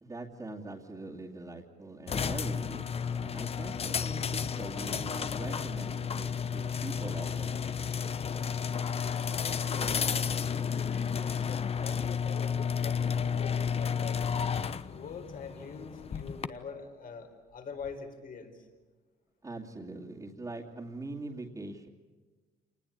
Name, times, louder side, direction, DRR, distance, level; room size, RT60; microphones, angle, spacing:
voice 1, 0.0-7.6 19.4-21.9, right 2 dB, 20° right, -3 dB, 2.6 m, -42 dB
sound 1, 2.1-16.5, left 7 dB, 35° left, 1.0 m, -32 dB
voice 2, 9.0-14.2 14.9-18.7, left 5 dB, 55° left, 5 dB, 4.5 m, -45 dB
27.5 x 20.0 x 8.7 m, 1.3 s
cardioid pair, 125°, 17 cm